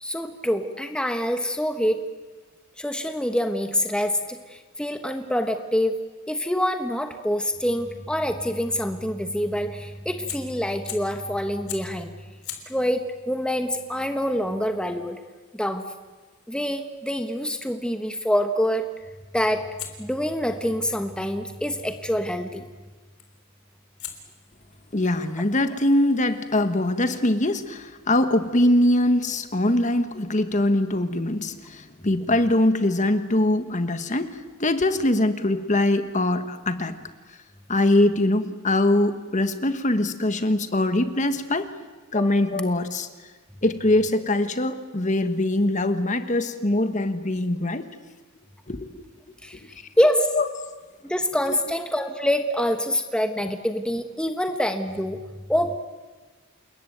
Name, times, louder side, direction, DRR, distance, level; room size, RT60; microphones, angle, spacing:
voice 1, 0.0-2.0 2.8-6.0 6.3-12.1 12.7-15.2 15.5-15.8 16.5-18.9 19.3-19.7 20.0-22.6 42.2-42.4 49.4-50.3 51.0-55.2 55.5-55.8, equal, 5° left, 6 dB, 1.2 m, -26 dB
Fire, 10.2-11.2 11.7-12.0 12.4-17.3 19.8-21.9 23.2-23.5 24.0-27.4, left 9 dB, 75° left, 3.7 m, -45 dB
voice 2, 24.9-36.9 37.7-41.7 42.1-43.1 43.6-47.9 48.7-48.9 50.3-50.5 51.5-51.6, left 1 dB, 35° left, 9 dB, 1.5 m, -22 dB
28.0 x 21.5 x 9.3 m, 1.3 s
head